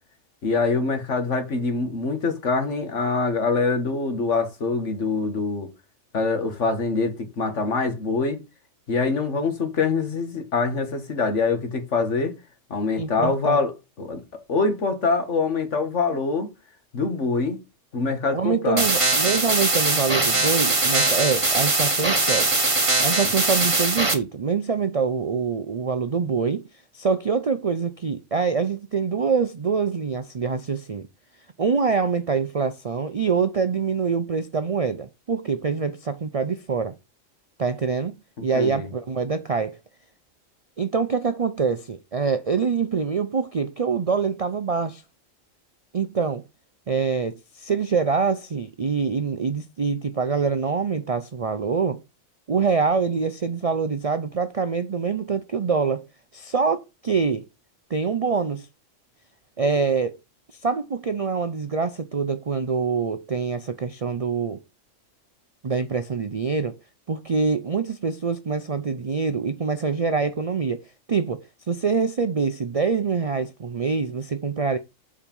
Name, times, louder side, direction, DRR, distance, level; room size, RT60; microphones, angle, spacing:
voice 1, 0.4-5.7 6.1-8.4 8.9-12.3 12.7-13.7 14.0-14.2 14.5-16.5 16.9-17.6 17.9-18.9 38.5-38.9, left 4 dB, 60° left, 1.9 m, -24 dB
voice 2, 13.0-13.6 18.3-22.5 23.0-26.6 26.9-31.1 31.6-36.9 37.6-39.8 40.8-45.0 45.9-46.4 46.9-52.0 52.5-56.0 56.3-57.4 57.9-58.7 59.6-60.2 60.5-64.6 65.6-66.8 67.1-70.8 71.1-74.8, right 5 dB, 50° right, 0.4 m, -25 dB
sound 1, 18.8-24.1, right 2 dB, 25° right, 1.3 m, -21 dB
7.4 x 4.9 x 5.4 m
omnidirectional pair, 1.4 m